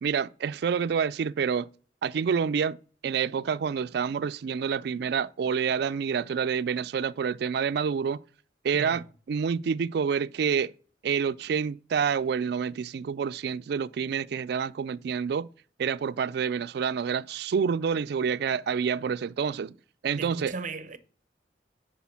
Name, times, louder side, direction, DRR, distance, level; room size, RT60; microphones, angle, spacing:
voice 1, 0.0-1.7 2.0-2.8 3.0-8.2 8.6-10.7 11.0-15.5 15.8-19.8 20.0-20.5, right 6 dB, 60° right, 0.3 m, -28 dB
voice 2, 20.2-21.0, right 4 dB, 45° right, 0.8 m, -37 dB
10.0 x 4.1 x 5.7 m
head